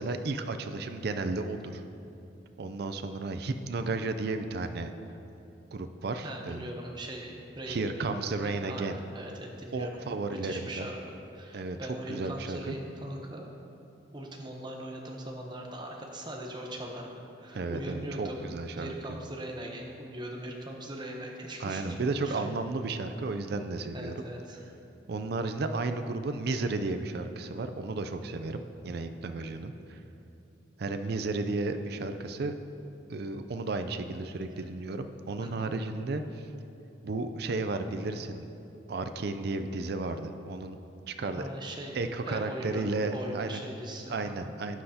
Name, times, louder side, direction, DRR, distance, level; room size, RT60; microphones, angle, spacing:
voice 1, 0.0-1.8 2.6-4.9 5.7-6.7 7.7-9.0 9.7-10.9 11.5-11.8 12.1-12.8 17.5-19.0 21.6-24.1 25.1-30.0 30.8-32.5 33.1-36.4 37.0-38.5 38.9-40.8 41.1-41.5 41.9-43.6 44.1-44.8, right 3 dB, 55° right, 8 dB, 0.4 m, -33 dB
voice 2, 6.2-11.0 11.3-13.5 14.1-17.1 17.4-18.5 18.8-22.0 22.2-22.5 23.9-24.6 34.5-34.6 35.4-35.7 41.4-44.5, right 1 dB, 25° right, 0 dB, 0.8 m, -40 dB
12.0 x 7.7 x 2.8 m, 2.8 s
head